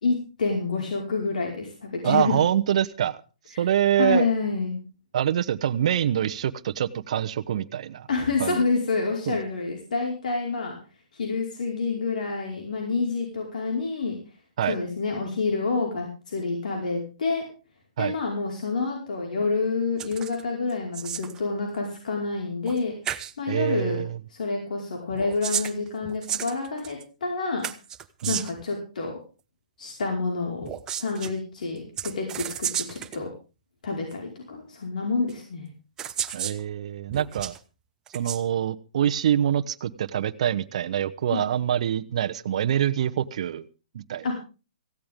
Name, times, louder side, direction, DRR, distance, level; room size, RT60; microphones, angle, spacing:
voice 1, 0.0-2.4 4.0-4.8 8.1-10.8 11.1-14.2 14.7-17.4 18.0-22.9 23.4-24.0 24.3-27.7 28.3-29.1 29.8-30.7 30.9-33.3 33.8-35.7 41.3-41.4 44.2-44.3, left 4 dB, 70° left, 1 dB, 5.0 m, -28 dB
voice 2, 2.0-3.2 3.6-4.2 5.1-8.1 8.4-8.6 9.3-9.4 14.6-14.8 18.0-18.1 23.5-24.2 28.2-28.4 36.3-37.5 38.1-43.6 43.9-44.3, right 10 dB, 50° right, 8 dB, 0.9 m, -25 dB
sound 1, 20.0-20.4 20.7-21.4 22.7-22.8 23.0-23.3 25.1-27.0 27.6-28.6 30.6-31.3 32.0-33.2 34.1-34.2 35.3-35.4 36.0-36.6 37.1-37.6 38.1-38.4, right 10 dB, 15° right, 0.8 m, -32 dB
17.5 x 15.5 x 3.7 m, 0.33 s
hypercardioid pair, 160°, 4 cm